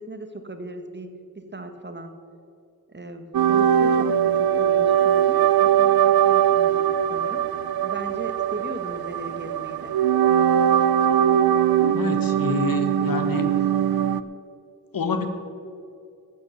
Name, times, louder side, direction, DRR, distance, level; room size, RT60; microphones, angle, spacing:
voice 1, 0.0-2.1 2.9-7.5 7.8-10.0, right 2 dB, 30° right, 7 dB, 1.3 m, -37 dB
sound 1, 3.3-14.2, right 9 dB, 70° right, 0.6 m, -21 dB
voice 2, 11.9-13.5 14.9-15.3, left 4 dB, 60° left, 7 dB, 1.3 m, -27 dB
13.0 x 8.7 x 6.8 m, 2.5 s
cardioid pair, 65°, 38 cm